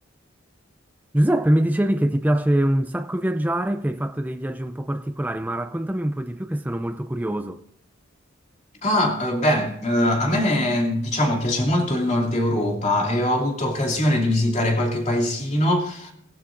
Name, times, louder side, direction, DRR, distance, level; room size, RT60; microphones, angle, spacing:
voice 1, 1.1-7.6, right 1 dB, 10° right, 0.5 m, -23 dB
voice 2, 8.8-16.1, left 1 dB, 35° left, 2.7 m, -22 dB
25.0 x 15.5 x 2.6 m
head